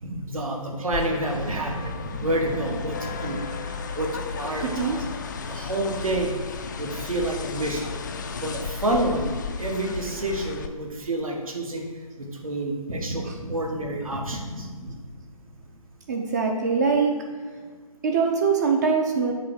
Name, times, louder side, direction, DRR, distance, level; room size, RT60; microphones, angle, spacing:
voice 1, 0.0-3.4 3.9-5.0 5.5-6.3 6.8-7.9 8.4-9.3 9.6-11.8 12.2-14.9, right 1 dB, 70° right, 1 dB, 1.5 m, -28 dB
sound 1, 0.9-10.7, left 5 dB, 30° left, 0.4 m, -34 dB
voice 2, 16.1-17.2 18.0-19.3, right 5 dB, 30° right, 2 dB, 0.6 m, -22 dB
7.5 x 3.3 x 6.2 m, 1.5 s
figure-of-eight pair, 145°, 19 cm